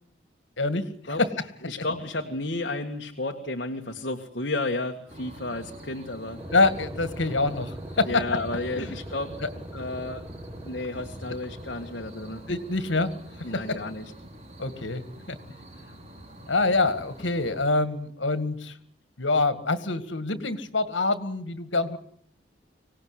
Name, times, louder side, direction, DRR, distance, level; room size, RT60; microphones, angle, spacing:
voice 1, 1.6-6.4 8.0-9.4 9.7-10.2 10.6-12.4 13.4-14.1, left 2 dB, 60° left, 2 dB, 2.0 m, -32 dB
sound 1, 5.1-17.7, right 1 dB, 35° right, 3.5 m, -46 dB
sound 2, 6.4-13.9, right 1 dB, 10° right, 1.7 m, -42 dB
voice 2, 6.5-8.1 8.7-8.9 12.5-13.1 14.6-15.0 15.3-15.4 16.5-18.7 19.2-22.0, left 3 dB, 85° left, 12 dB, 2.1 m, -25 dB
25.5 x 18.5 x 9.9 m, 0.64 s
head